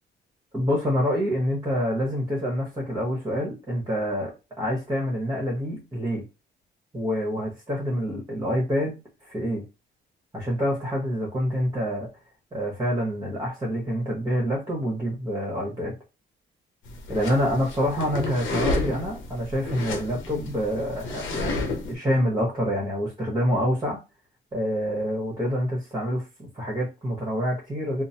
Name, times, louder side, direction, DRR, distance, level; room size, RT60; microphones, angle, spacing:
voice 1, 0.5-6.2 6.9-9.6 10.3-12.1 12.5-15.9 17.1-24.0 24.5-28.0, equal, 20° right, -2 dB, 1.2 m, -27 dB
sound 1, 16.9-21.9, left 2 dB, 80° left, 0.7 m, -31 dB
2.9 x 2.1 x 2.7 m, 0.27 s
cardioid pair, 90°, 20 cm